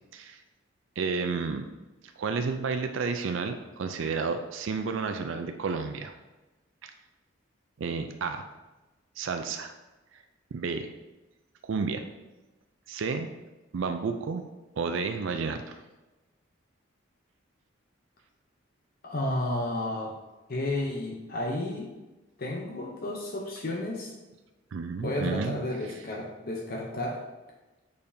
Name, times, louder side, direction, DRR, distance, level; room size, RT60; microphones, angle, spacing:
voice 1, 1.0-1.6 2.2-6.1 6.8-6.9 7.8-8.5 9.2-9.7 10.5-10.9 11.6-12.0 12.9-13.3 13.7-14.4 14.8-15.8 24.7-25.6, right 4 dB, 70° right, 7 dB, 0.4 m, -31 dB
voice 2, 19.0-20.2 20.5-21.9 22.4-24.1 25.0-27.2, left 1 dB, 45° left, -1 dB, 0.7 m, -32 dB
6.7 x 5.2 x 2.7 m, 1.1 s
head